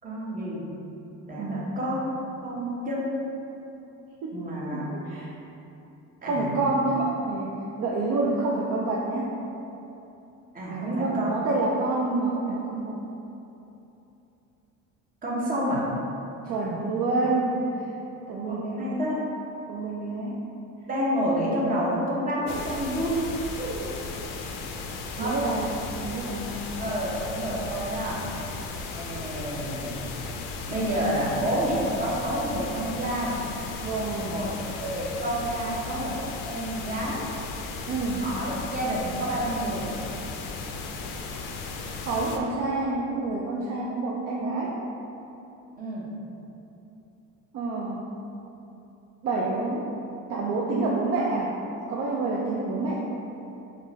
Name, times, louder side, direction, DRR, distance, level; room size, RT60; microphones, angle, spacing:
voice 1, 0.0-0.7 1.3-2.1 2.4-3.1 4.3-4.9 6.2-6.6 10.5-11.3 15.2-15.8 18.5-19.2 20.9-23.2 23.6-23.9 25.2-25.3 26.8-28.2 28.9-30.0 30.7-33.3 34.3-34.5 34.8-36.2 36.4-37.2 38.2-39.9 45.8-46.1, equal, 25° right, -6 dB, 0.9 m, -29 dB
voice 2, 1.4-1.7 4.2-5.3 6.2-7.5 7.8-9.3 10.7-13.0 16.4-17.9 18.3-19.0 19.7-20.4 25.2-25.7 26.0-26.6 33.8-34.3 37.9-38.2 42.0-44.8 47.5-48.0 49.2-49.9 50.3-51.6 51.9-53.0, right 3 dB, 50° right, -3 dB, 0.4 m, -28 dB
sound 1, 22.5-42.4, left 3 dB, 80° left, 0.5 m, -36 dB
3.7 x 2.5 x 4.0 m, 2.9 s
cardioid pair, 130°, 33 cm